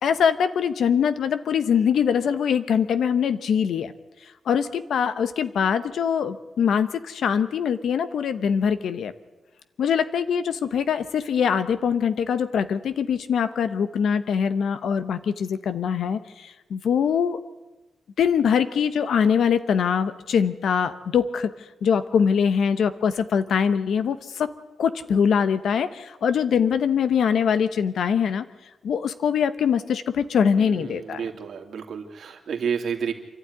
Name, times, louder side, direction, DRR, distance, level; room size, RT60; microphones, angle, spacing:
voice 1, 0.0-3.9 4.2-9.1 9.8-17.4 18.2-21.5 21.8-24.5 24.8-28.5 28.8-31.3, left 7 dB, 85° left, 11 dB, 1.0 m, -23 dB
voice 2, 30.6-33.1, right 7 dB, 75° right, 4 dB, 2.9 m, -30 dB
28.5 x 12.5 x 9.7 m, 1.1 s
wide cardioid pair, 110°, 0 cm